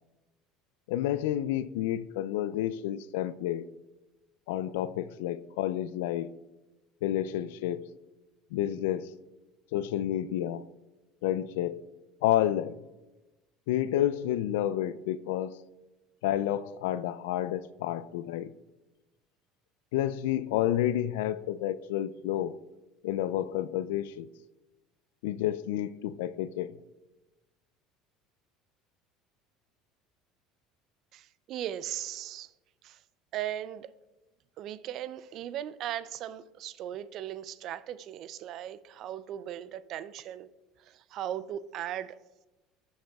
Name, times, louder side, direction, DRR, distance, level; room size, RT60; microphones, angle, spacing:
voice 1, 0.9-3.7 4.5-6.3 7.0-7.9 8.5-9.1 9.7-10.7 11.2-11.9 12.2-12.8 13.7-15.6 16.2-18.5 19.9-22.6 23.0-24.3 25.2-26.8, left 12 dB, 85° left, 0.3 m, -30 dB
voice 2, 31.1-32.5 32.8-33.0 33.3-33.9 34.6-40.5 40.8-42.2, right 11 dB, 55° right, 0.4 m, -38 dB
14.5 x 6.4 x 2.3 m
supercardioid pair, 95°, 0 cm